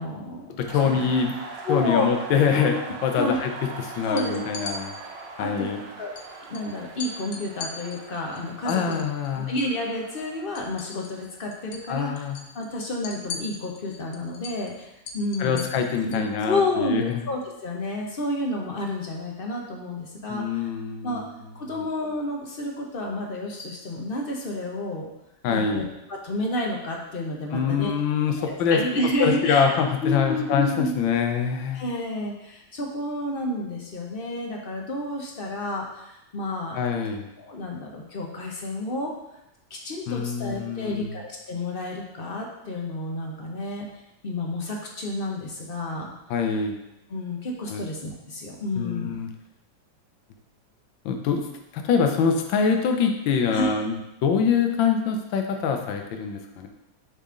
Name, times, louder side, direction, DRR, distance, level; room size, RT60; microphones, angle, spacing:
voice 1, 0.0-1.0 1.7-2.0 2.5-2.7 3.2-3.4 4.1-4.7 5.4-5.7 6.0-6.1 6.5-9.0 9.4-12.2 12.5-15.6 16.0-20.7 21.0-21.2 21.6-25.1 25.5-25.8 26.1-27.9 28.4-29.7 30.0-30.9 31.7-36.8 37.4-39.1 39.7-43.9 44.2-46.1 47.1-49.1 53.5-53.7, left 1 dB, 45° left, 0 dB, 0.7 m, -30 dB
voice 2, 0.6-1.3 1.7-2.8 3.0-3.5 3.8-4.9 5.4-5.8 8.6-9.5 11.9-12.4 15.4-17.2 20.3-21.2 25.4-25.9 27.5-28.8 29.2-31.8 36.7-37.3 40.1-41.2 46.3-46.7 47.7-47.8 48.8-49.3 51.0-51.4 51.7-53.9 54.2-56.7, left 6 dB, 85° left, 4 dB, 1.5 m, -24 dB
sound 1, 0.7-12.4, right 4 dB, 75° right, 1.4 m, -41 dB
sound 2, 4.2-4.8 6.2-6.3 6.5-6.7 7.0-9.8 10.1-11.3 11.5-11.9 12.2-16.3, left 4 dB, 65° left, 1.1 m, -39 dB
6.8 x 4.2 x 3.7 m, 0.89 s
omnidirectional pair, 2.0 m